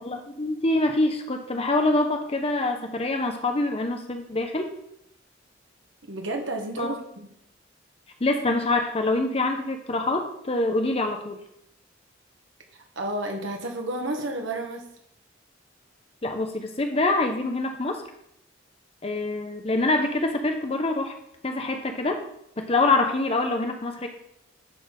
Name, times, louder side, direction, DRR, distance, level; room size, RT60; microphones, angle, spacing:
voice 1, 0.0-4.7 6.8-6.9 8.2-11.4 16.2-18.0 19.0-21.1 21.4-22.2 22.6-24.1, left 2 dB, 30° left, 5 dB, 0.8 m, -25 dB
voice 2, 6.0-7.3 12.7-14.8, right 1 dB, 80° right, 2 dB, 1.6 m, -31 dB
10.5 x 4.2 x 5.2 m, 0.77 s
head